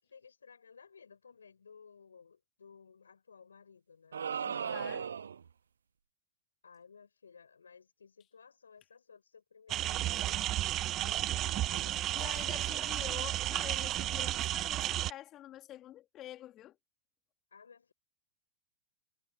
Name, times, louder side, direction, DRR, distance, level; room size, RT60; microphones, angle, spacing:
voice 1, 0.0-4.2 6.6-10.5 11.0-13.1 17.5-17.9, left 6 dB, 85° left, 5.9 m, -57 dB
sound 1, 4.1-5.5, right 7 dB, 80° right, 0.4 m, -36 dB
voice 2, 4.4-5.1 12.1-16.8, left 13 dB, 35° left, 2.8 m, -47 dB
sound 2, 9.7-15.1, right 14 dB, 35° right, 0.8 m, -33 dB
hypercardioid pair, 95°, 0 cm